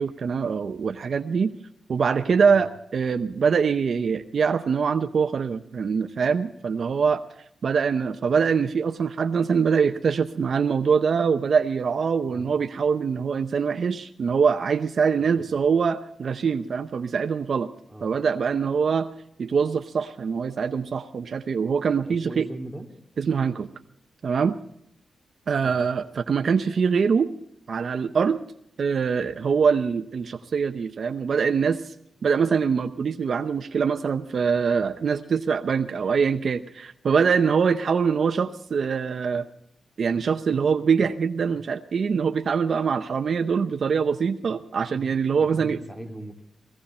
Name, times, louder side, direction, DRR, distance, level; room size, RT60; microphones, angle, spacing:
voice 1, 0.0-1.5 1.9-7.2 7.6-17.7 18.0-19.1 19.4-22.5 23.2-23.7 24.2-24.6 25.5-27.3 27.7-28.4 28.8-31.9 32.2-39.5 40.0-45.8, right 6 dB, 55° right, 8 dB, 0.7 m, -23 dB
voice 2, 15.2-15.5 17.9-18.1 22.0-22.9 45.3-46.4, right 1 dB, ahead, 0 dB, 2.6 m, -39 dB
18.0 x 16.0 x 4.3 m, 0.73 s
wide cardioid pair, 115°, 0 cm